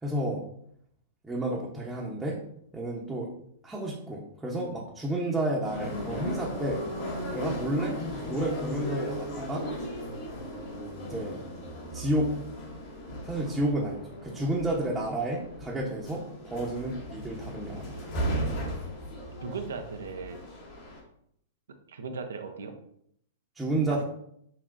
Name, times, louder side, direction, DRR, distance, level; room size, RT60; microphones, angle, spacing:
voice 1, 0.0-0.4 1.2-2.4 2.7-3.3 3.6-6.9 7.3-9.7 11.0-11.4 11.9-12.4 13.2-18.1 23.6-24.0, right 1 dB, 10° right, -4 dB, 0.7 m, -31 dB
sound 1, 5.6-21.0, equal, 50° left, 1.2 m, -36 dB
voice 2, 19.4-20.4 21.9-22.7 23.9-24.0, right 5 dB, 80° right, 6 dB, 0.5 m, -37 dB
5.7 x 2.4 x 2.5 m, 0.71 s
hypercardioid pair, 115°, 0 cm